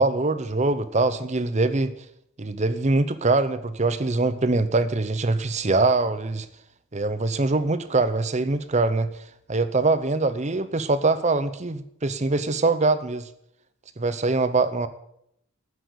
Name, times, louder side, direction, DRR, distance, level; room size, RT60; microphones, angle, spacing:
voice 1, 0.0-1.9 2.4-6.5 6.9-9.1 9.5-13.3 14.0-14.9, right 3 dB, 30° right, 13 dB, 0.7 m, -23 dB
9.9 x 8.0 x 8.0 m, 0.75 s
head